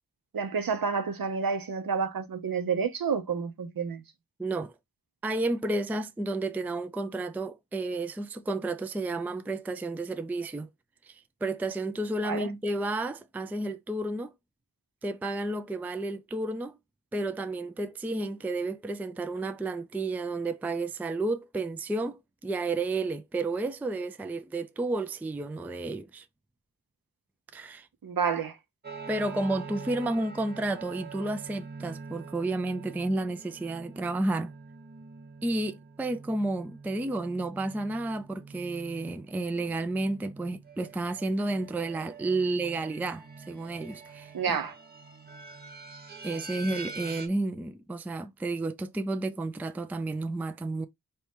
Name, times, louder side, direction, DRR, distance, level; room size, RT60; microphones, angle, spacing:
voice 1, 0.3-4.0 12.2-12.5 28.0-28.6 44.3-44.8, right 6 dB, 65° right, 0.8 m, -29 dB
voice 2, 4.4-4.7 5.2-10.7 11.0-14.3 15.0-16.8 17.1-26.3 27.5-27.9 29.1-34.5 35.4-44.6 46.2-50.9, right 2 dB, 5° right, 0.3 m, -31 dB
sound 1, 28.8-47.3, right 4 dB, 25° right, 0.8 m, -45 dB
4.3 x 2.7 x 3.5 m
wide cardioid pair, 125°, 38 cm